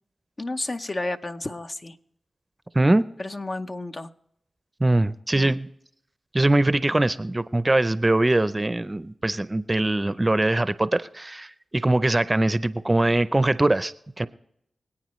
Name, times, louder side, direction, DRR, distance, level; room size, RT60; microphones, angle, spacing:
voice 1, 0.4-2.0 3.2-4.1 5.3-5.6, left 2 dB, 45° left, 8 dB, 0.8 m, -31 dB
voice 2, 2.7-3.1 4.8-5.7 6.3-14.3, right 2 dB, 25° right, 15 dB, 0.6 m, -22 dB
25.0 x 8.7 x 3.2 m, 0.75 s
cardioid pair, 40°, 0 cm